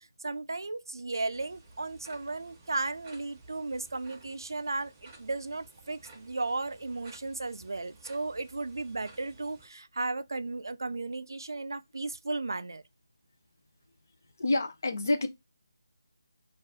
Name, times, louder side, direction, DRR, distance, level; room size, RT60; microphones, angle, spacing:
voice 1, 0.2-12.8, right 3 dB, 80° right, 0.3 m, -35 dB
sound 1, 1.3-9.7, right 2 dB, 10° right, 0.4 m, -55 dB
voice 2, 14.4-15.3, left 2 dB, 50° left, 0.5 m, -27 dB
2.4 x 2.3 x 2.6 m
figure-of-eight pair, 175°, 2 cm